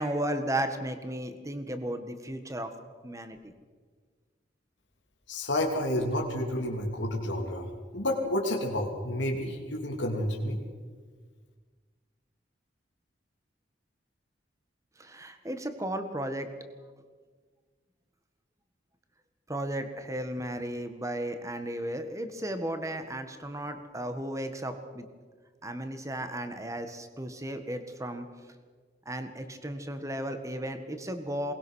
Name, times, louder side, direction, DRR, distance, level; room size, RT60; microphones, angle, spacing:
voice 1, 0.0-2.7 3.0-3.5 15.0-16.5 19.5-25.1 25.6-28.3 29.0-31.5, right 1 dB, 15° right, 8 dB, 1.6 m, -34 dB
voice 2, 5.3-10.6, left 1 dB, 90° left, 0 dB, 3.1 m, -30 dB
22.0 x 20.0 x 6.4 m, 1.6 s
head